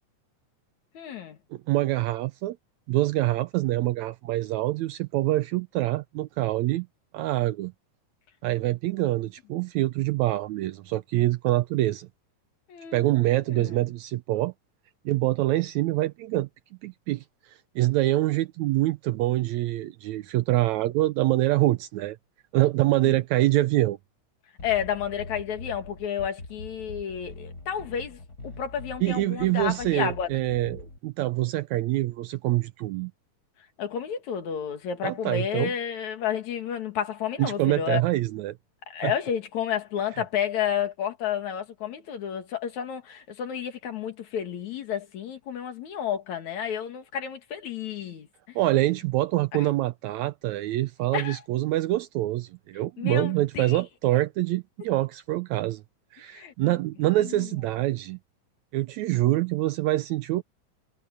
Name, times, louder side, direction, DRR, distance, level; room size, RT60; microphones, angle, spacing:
voice 1, 0.9-1.4 12.7-13.1 13.5-13.7 23.0-23.2 24.6-30.3 33.8-38.0 38.9-48.3 49.5-49.6 51.1-51.4 53.0-53.8 56.3-56.8 57.2-57.5, left 8 dB, 65° left, 3.2 m, -31 dB
voice 2, 1.5-2.6 2.9-6.9 7.1-7.7 8.4-12.1 12.9-14.5 15.1-16.5 16.8-17.2 17.8-22.2 22.5-24.0 29.0-33.1 35.0-35.7 37.4-38.6 39.0-39.1 48.6-55.8 56.1-58.2 58.7-60.4, right 16 dB, 80° right, 1.7 m, -25 dB
sound 1, 24.6-31.0, left 2 dB, 30° left, 4.8 m, -43 dB
omnidirectional pair, 3.7 m